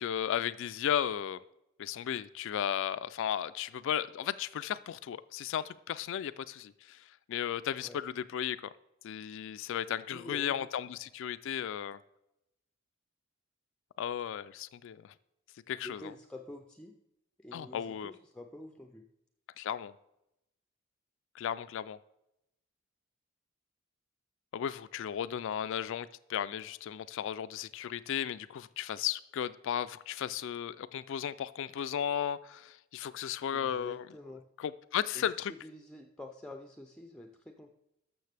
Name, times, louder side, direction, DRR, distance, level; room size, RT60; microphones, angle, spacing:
voice 1, 0.0-1.4 1.8-8.7 9.0-12.0 14.0-15.1 15.7-16.1 17.5-18.1 19.6-19.9 21.3-22.0 24.5-34.1 34.6-35.5, left 9 dB, 65° left, 0.3 m, -35 dB
voice 2, 10.1-10.7 15.8-16.9 17.4-19.1 33.5-34.4 35.1-35.2 35.6-37.7, left 1 dB, 5° left, 0.5 m, -48 dB
13.0 x 6.5 x 3.4 m
head